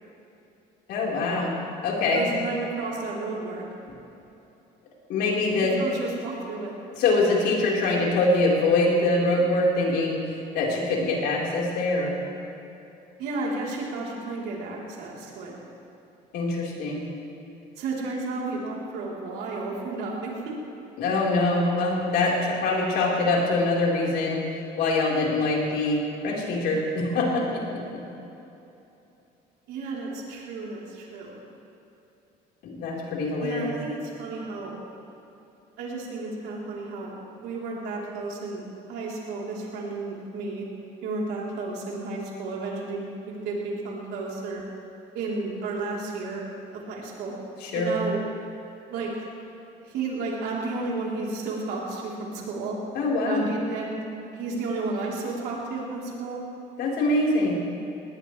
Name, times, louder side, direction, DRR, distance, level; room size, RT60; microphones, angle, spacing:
voice 1, 0.9-1.5 1.8-2.2 5.1-5.7 6.9-10.2 10.5-12.2 16.3-17.0 21.0-24.4 24.8-27.8 32.6-33.7 47.6-48.0 52.9-53.5 56.8-57.5, left 2 dB, 80° left, -3 dB, 4.3 m, -24 dB
voice 2, 2.1-3.6 5.6-6.7 13.2-15.6 17.8-20.6 29.7-31.4 33.4-34.7 35.8-38.6 38.9-40.7 41.0-44.6 45.1-46.5 46.7-47.4 47.7-48.2 48.9-49.1 49.8-52.8 53.2-54.0 54.3-56.4, right 3 dB, 85° right, -4 dB, 3.7 m, -32 dB
20.5 x 19.5 x 3.3 m, 2.9 s
cardioid pair, 110°, 17 cm